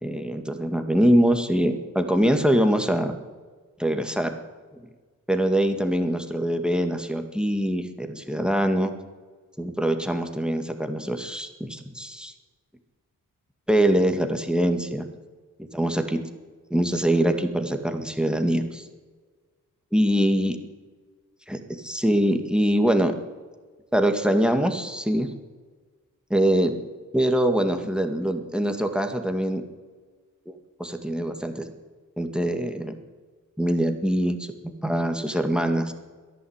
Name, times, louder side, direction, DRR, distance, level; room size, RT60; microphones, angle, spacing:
voice 1, 0.0-3.1 3.8-4.3 5.3-8.9 9.6-12.3 13.7-15.1 15.7-16.2 16.7-18.8 19.9-20.6 21.5-23.1 23.9-25.3 26.3-26.7 27.1-29.6 30.5-31.7 32.2-32.9 33.6-34.5 34.8-35.9, right 1 dB, ahead, 6 dB, 2.0 m, -23 dB
13.5 x 11.0 x 8.1 m, 1.4 s
cardioid pair, 60°, 35 cm